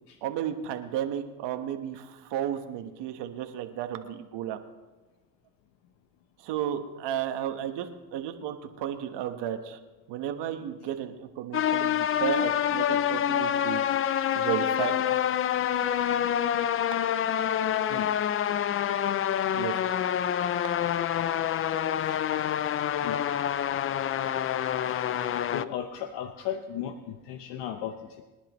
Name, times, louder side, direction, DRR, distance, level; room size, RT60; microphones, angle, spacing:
voice 1, 0.2-4.6 6.4-9.8 10.1-13.8 14.3-15.2 19.5-19.8, right 10 dB, 70° right, 7 dB, 1.4 m, -33 dB
sound 1, 11.5-25.6, left 10 dB, 30° left, 0.4 m, -27 dB
voice 2, 21.9-22.7 23.0-23.2 24.8-28.2, left 9 dB, 70° left, 7 dB, 0.9 m, -37 dB
24.5 x 10.5 x 3.1 m, 1.1 s
supercardioid pair, 95°, 43 cm